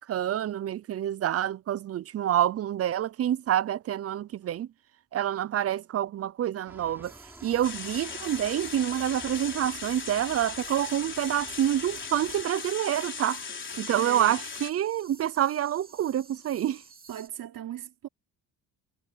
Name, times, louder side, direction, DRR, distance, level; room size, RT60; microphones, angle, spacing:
voice 1, 0.0-4.7 5.1-7.1 7.4-13.4 13.8-16.8, right 11 dB, 45° right, 0.5 m, -27 dB
sound 1, 6.7-12.4, right 1 dB, 5° right, 6.6 m, -50 dB
sound 2, 7.0-17.3, right 4 dB, 25° right, 2.7 m, -53 dB
sound 3, 7.6-14.7, left 5 dB, 30° left, 3.9 m, -38 dB
voice 2, 14.0-14.4 17.1-18.1, right 10 dB, 70° right, 3.2 m, -38 dB
cardioid pair, 135°, 35 cm